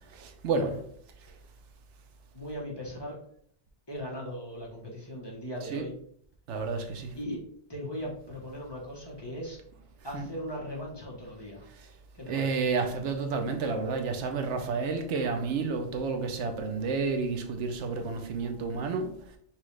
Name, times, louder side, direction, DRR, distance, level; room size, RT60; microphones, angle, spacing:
voice 1, 0.1-0.7 5.7-5.8 6.5-7.1 10.1-10.3 12.3-19.1, right 4 dB, 85° right, 1.0 m, -30 dB
voice 2, 2.3-3.2 3.9-5.9 7.1-7.4 7.7-9.6 10.0-11.7 12.1-12.7, equal, 25° left, 0.9 m, -38 dB
5.9 x 2.4 x 3.1 m
omnidirectional pair, 1.2 m